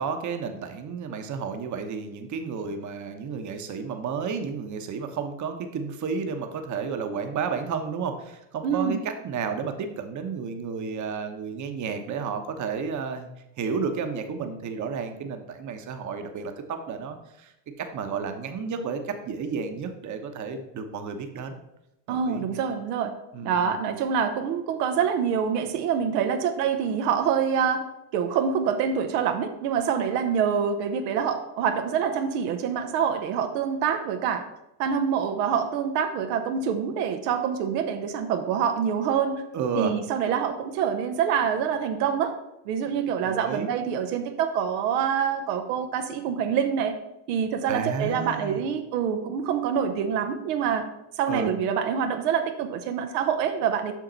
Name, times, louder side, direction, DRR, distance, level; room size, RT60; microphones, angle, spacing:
voice 1, 0.0-9.0 9.2-13.3 13.6-17.5 17.8-21.6 22.1-22.4 23.3-23.8 39.5-39.9 43.2-43.7 47.7-48.6 51.3-51.5, right 5 dB, 35° right, 6 dB, 1.0 m, -32 dB
voice 2, 8.6-9.0 22.1-23.1 23.4-27.8 28.1-34.4 34.8-39.4 39.7-42.3 42.7-47.0 47.3-50.8 51.2-53.9, right 7 dB, 80° right, 6 dB, 0.9 m, -26 dB
7.4 x 5.8 x 3.9 m, 0.88 s
supercardioid pair, 100°, 48 cm